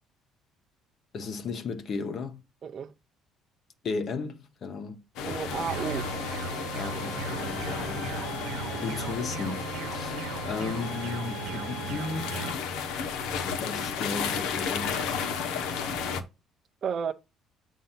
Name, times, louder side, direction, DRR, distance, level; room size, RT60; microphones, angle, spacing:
voice 1, 1.1-2.4 3.8-5.0 6.7-7.6 8.1-12.6 13.5-15.3, left 4 dB, 45° left, 1.0 m, -35 dB
voice 2, 2.6-2.9 5.3-6.1 16.8-17.1, right 7 dB, 45° right, 0.6 m, -32 dB
sound 1, 5.2-16.2, left 6 dB, 85° left, 1.0 m, -33 dB
sound 2, 5.7-12.5, right 7 dB, 90° right, 1.0 m, -38 dB
7.7 x 2.7 x 5.7 m
cardioid pair, 125°, 0 cm